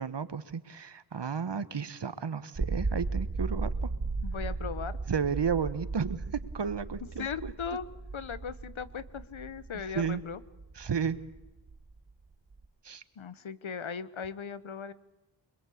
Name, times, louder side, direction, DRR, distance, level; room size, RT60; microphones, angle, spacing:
voice 1, 0.0-3.9 5.1-7.5 9.9-10.2 10.7-11.2 12.8-13.0, right 6 dB, 60° right, 14 dB, 1.4 m, -33 dB
sound 1, 2.5-12.7, right 3 dB, 40° right, 1.8 m, -36 dB
voice 2, 4.2-5.0 7.2-7.9 8.1-10.4 13.2-14.9, left 6 dB, 80° left, 16 dB, 1.2 m, -38 dB
24.5 x 22.0 x 8.5 m, 0.97 s
wide cardioid pair, 60°, 47 cm